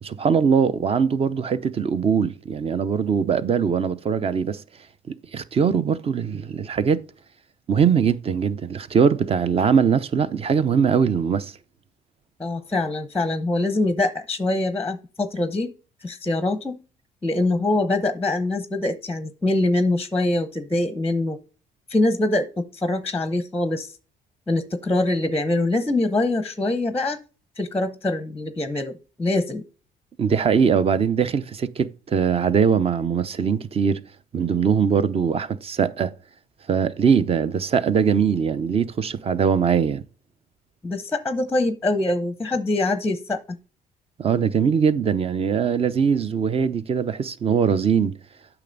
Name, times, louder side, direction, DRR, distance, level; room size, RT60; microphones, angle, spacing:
voice 1, 0.0-4.6 5.1-7.0 7.7-11.5 30.2-34.0 34.3-36.1 36.7-40.0 44.2-48.1, right 6 dB, 35° right, 0.7 m, -21 dB
voice 2, 12.4-15.7 16.0-16.8 17.2-21.4 21.9-23.9 24.5-27.2 27.6-29.6 40.8-43.6, left 2 dB, 10° left, 0.7 m, -24 dB
8.9 x 6.0 x 3.9 m
cardioid pair, 110°, 17 cm